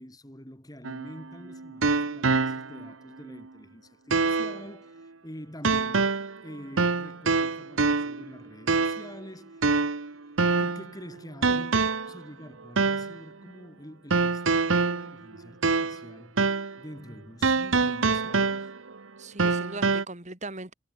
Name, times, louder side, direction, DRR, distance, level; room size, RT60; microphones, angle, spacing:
voice 1, 0.0-10.1 10.6-16.5 16.8-18.7, equal, 20° left, 5.9 m, -46 dB
sound 1, 0.8-2.9 3.3-3.4 4.1-4.6 5.6-6.4 6.8-8.3 8.7-9.1 9.6-10.9 11.4-12.2 12.8-13.2 14.1-16.1 16.4-16.8 17.4-18.9 19.4-20.0, right 4 dB, 85° right, 1.2 m, -25 dB
voice 2, 19.2-20.7, right 2 dB, 35° right, 3.2 m, -39 dB
head